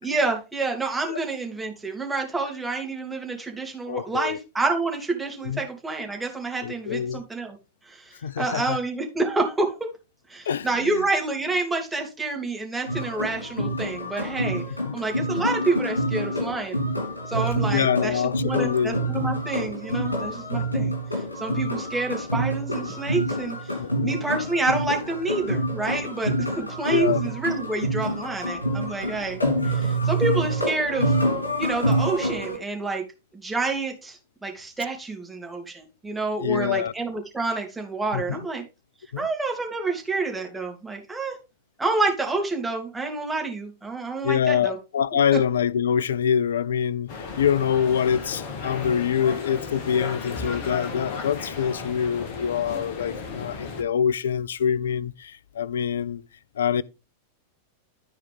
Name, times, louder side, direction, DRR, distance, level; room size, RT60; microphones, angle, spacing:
voice 1, 0.0-7.6 7.9-9.9 10.3-14.6 14.9-16.8 17.3-20.9 21.4-23.6 24.0-31.1 31.6-33.0 33.3-38.6 39.2-41.4 41.8-44.8, right 3 dB, 10° right, 2.9 m, -28 dB
voice 2, 3.9-4.4 5.4-5.7 6.6-7.2 8.2-8.8 10.5-11.0 17.7-19.0 23.8-24.1 26.9-27.2 36.4-36.9 38.1-38.5 39.1-39.3 44.2-56.2 56.6-56.8, left 8 dB, 65° left, 0.5 m, -25 dB
sound 1, 12.9-32.6, right 1 dB, 80° left, 2.9 m, -27 dB
sound 2, 47.1-53.8, left 4 dB, 50° left, 2.0 m, -35 dB
14.0 x 4.9 x 3.6 m
figure-of-eight pair, 90°, 0 cm